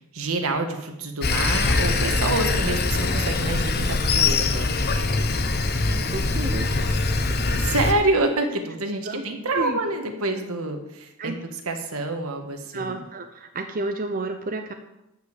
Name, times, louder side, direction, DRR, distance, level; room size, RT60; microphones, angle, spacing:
voice 1, 0.1-4.7 7.4-11.3 11.7-13.0, right 2 dB, 75° right, 5 dB, 1.7 m, -27 dB
Sawing, 1.2-7.9, left 3 dB, 45° left, 0.9 m, -23 dB
voice 2, 5.9-7.3 9.0-9.2 9.5-9.8 11.2-11.4 12.7-14.7, right 2 dB, 40° right, 5 dB, 0.7 m, -31 dB
12.5 x 5.4 x 8.3 m, 0.89 s
head